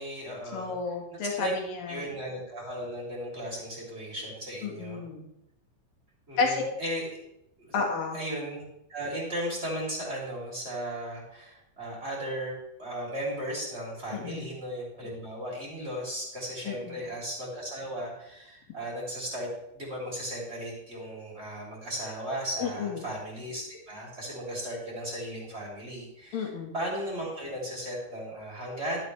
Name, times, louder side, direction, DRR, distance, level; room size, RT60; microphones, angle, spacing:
voice 1, 0.0-0.7 1.1-1.5 1.9-5.0 6.3-7.1 7.6-7.7 8.1-8.6 8.9-19.5 19.7-29.0, equal, 15° right, -3 dB, 3.1 m, -36 dB
voice 2, 0.5-2.0 4.6-5.2 6.4-6.6 7.7-8.2 14.1-14.5 16.6-17.0 22.6-23.1 26.3-26.7, left 4 dB, 65° left, 1 dB, 3.3 m, -31 dB
12.0 x 11.0 x 3.4 m, 0.81 s
omnidirectional pair, 4.6 m